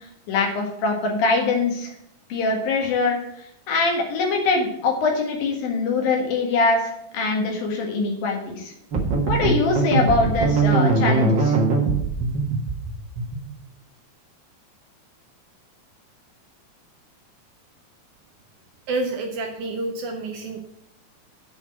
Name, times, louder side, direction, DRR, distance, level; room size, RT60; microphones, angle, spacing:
voice 1, 0.3-1.9 2.3-8.7 9.3-11.6, left 3 dB, 75° left, 1 dB, 3.5 m, -23 dB
sound 1, 8.9-13.5, right 3 dB, 50° right, 1.4 m, -21 dB
voice 2, 18.9-20.6, right 2 dB, 70° right, 3 dB, 2.1 m, -28 dB
7.7 x 5.1 x 7.3 m, 0.75 s
omnidirectional pair, 4.2 m